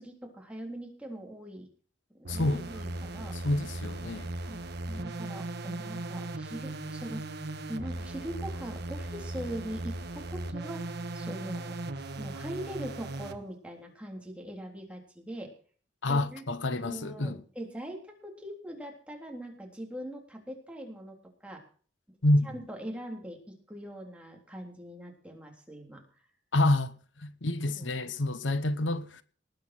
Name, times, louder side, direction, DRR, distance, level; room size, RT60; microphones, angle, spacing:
voice 1, 0.0-1.7 2.2-3.4 4.4-4.6 4.9-7.2 7.7-11.8 12.2-15.5 16.1-16.4 16.7-21.2 21.4-21.6 22.4-26.0 27.6-27.8, right 1 dB, 5° right, 3.6 m, -41 dB
sound 1, 2.2-13.4, right 2 dB, 60° right, 1.3 m, -38 dB
voice 2, 2.3-2.6 3.3-4.3 16.0-17.4 22.2-22.5 26.5-29.2, left 1 dB, 85° left, 1.0 m, -28 dB
19.5 x 8.4 x 6.1 m
head